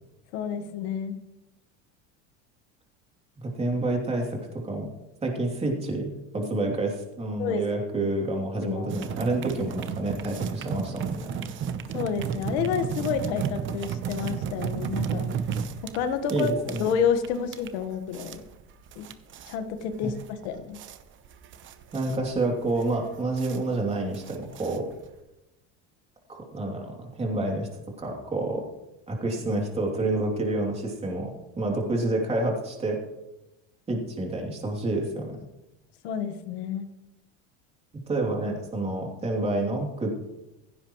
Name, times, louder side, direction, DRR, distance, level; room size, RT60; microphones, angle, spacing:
voice 1, 0.3-1.2 7.4-8.1 8.6-8.9 11.9-15.4 15.9-16.5 16.8-18.4 18.9-19.1 19.5-20.8 36.0-36.9, left 7 dB, 85° left, 8 dB, 1.5 m, -29 dB
voice 2, 3.4-4.4 4.6-4.9 5.2-11.3 16.3-16.9 20.0-20.1 21.9-24.9 26.3-27.7 28.0-28.7 29.1-31.3 31.6-33.0 33.9-35.4 38.1-40.1, right 2 dB, 20° right, 0 dB, 2.9 m, -28 dB
sound 1, 8.9-25.2, right 7 dB, 40° right, 1.0 m, -34 dB
16.0 x 15.5 x 3.1 m, 0.96 s
cardioid pair, 140°, 32 cm